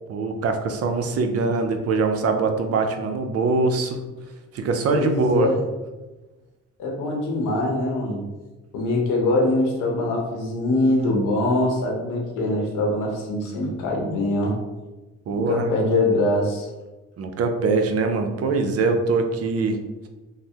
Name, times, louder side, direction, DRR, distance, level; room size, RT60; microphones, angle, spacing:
voice 1, 0.1-4.0 4.5-5.6 15.3-15.7 17.2-19.8, right 4 dB, 55° right, 5 dB, 0.5 m, -23 dB
voice 2, 4.9-5.6 6.8-8.2 8.7-14.6 15.3-16.7, left 2 dB, 85° left, 0 dB, 0.8 m, -23 dB
3.2 x 2.0 x 2.8 m, 1.1 s
cardioid pair, 90°, 30 cm